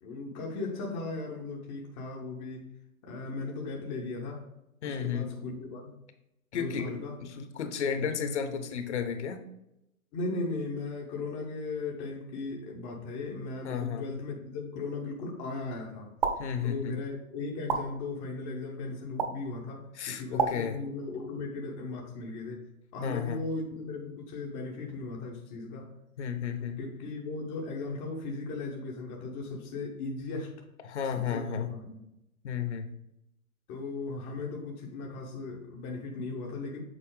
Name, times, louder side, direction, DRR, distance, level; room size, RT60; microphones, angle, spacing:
voice 1, 0.0-2.6 3.0-4.5 4.8-5.9 6.5-7.2 10.1-16.1 16.6-22.6 22.9-25.9 26.8-30.5 31.1-32.0 33.7-36.8, left 3 dB, 15° left, -1 dB, 0.6 m, -37 dB
voice 2, 4.8-5.4 6.5-9.4 13.6-14.1 16.4-17.0 19.9-20.8 23.0-23.4 26.2-26.8 30.8-31.7 32.4-32.9, left 7 dB, 55° left, 8 dB, 0.8 m, -33 dB
sound 1, 16.2-16.4 17.7-17.8 19.2-19.3 20.4-20.5, right 6 dB, 30° right, 0.5 m, -26 dB
6.8 x 4.0 x 3.7 m, 0.84 s
hypercardioid pair, 130°, 43 cm